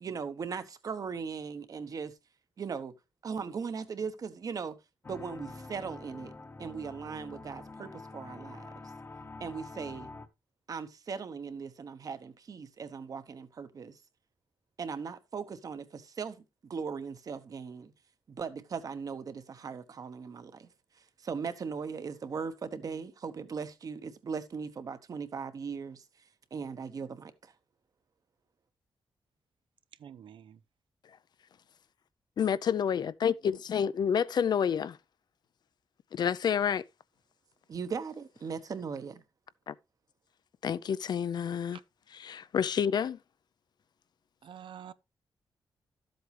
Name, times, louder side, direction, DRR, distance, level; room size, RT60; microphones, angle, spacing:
voice 1, 0.0-2.1 2.6-2.9 3.2-4.8 5.1-6.3 6.6-8.9 9.4-10.1 10.7-14.0 14.8-16.4 16.7-17.9 18.3-20.7 21.2-26.0 26.5-27.5 37.7-39.2, right 5 dB, 45° right, 1.1 m, -38 dB
sound 1, 5.0-10.3, left 3 dB, 25° left, 1.0 m, -46 dB
voice 2, 30.0-30.6 41.7-41.8 44.4-44.9, right 9 dB, 75° right, 0.6 m, -47 dB
voice 3, 32.4-35.0 36.1-36.8 39.7-39.8 40.6-41.8 42.2-43.2, left 7 dB, 55° left, 0.5 m, -29 dB
13.0 x 7.9 x 3.2 m
wide cardioid pair, 180°, 9 cm